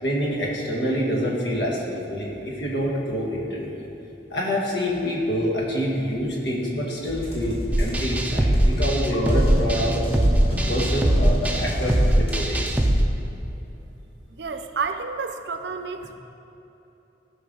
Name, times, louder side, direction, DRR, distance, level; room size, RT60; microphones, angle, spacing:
voice 1, 0.0-3.9 4.3-10.0 10.5-12.6, equal, 75° left, -3 dB, 1.8 m, -26 dB
sound 1, 7.0-12.9, equal, 30° left, 2.0 m, -29 dB
sound 2, 7.7-13.0, right 1 dB, 10° right, 0.5 m, -21 dB
voice 2, 14.4-16.2, right 5 dB, 70° right, 7 dB, 0.6 m, -30 dB
15.5 x 5.6 x 3.9 m, 3.0 s
head